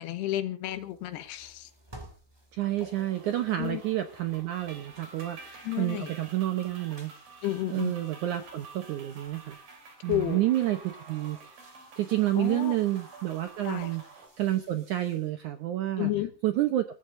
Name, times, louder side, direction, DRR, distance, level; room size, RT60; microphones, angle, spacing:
voice 1, 0.0-1.7 3.6-3.8 5.6-6.1 7.4-7.9 10.1-10.4 12.3-12.8 13.6-13.9 16.0-16.3, left 13 dB, 85° left, 10 dB, 3.2 m, -31 dB
sound 1, 0.6-15.3, right 1 dB, 10° right, 1.4 m, -55 dB
voice 2, 2.5-7.1 7.7-9.6 10.0-11.5 12.0-14.0 14.4-16.1 16.4-16.9, right 14 dB, 75° right, 8 dB, 1.8 m, -29 dB
sound 2, 2.8-14.3, right 4 dB, 55° right, 5.2 m, -50 dB
28.5 x 14.5 x 2.6 m, 0.34 s
omnidirectional pair, 4.7 m